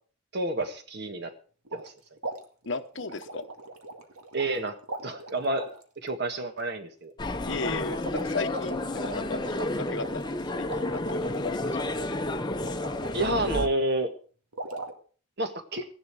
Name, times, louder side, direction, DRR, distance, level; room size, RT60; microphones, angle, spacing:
voice 1, 0.3-1.3 1.7-1.9 4.3-4.8 5.0-7.1 13.1-14.1 15.4-15.9, right 2 dB, 50° right, 7 dB, 1.7 m, -29 dB
sound 1, 1.6-1.9 2.2-4.6 4.8-5.8 7.6-13.1 14.5-14.9, right 2 dB, 90° right, 2.1 m, -40 dB
voice 2, 2.7-3.4 7.5-12.0 12.5-12.8, left 3 dB, 55° left, 11 dB, 0.9 m, -36 dB
sound 2, 7.2-13.7, left 2 dB, 20° left, 0.8 m, -31 dB
15.5 x 11.0 x 4.8 m, 0.42 s
head